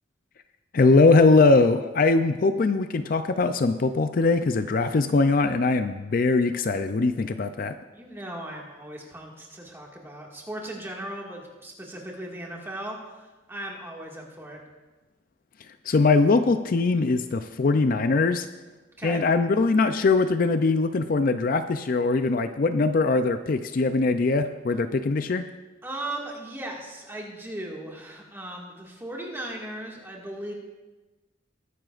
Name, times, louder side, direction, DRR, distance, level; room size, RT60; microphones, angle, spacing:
voice 1, 0.7-7.8 15.9-18.5 19.0-25.5, left 3 dB, 50° left, 9 dB, 0.4 m, -21 dB
voice 2, 7.9-14.6 19.0-19.2 25.8-30.5, right 1 dB, 15° right, -2 dB, 1.9 m, -37 dB
20.5 x 9.9 x 2.5 m, 1.2 s
head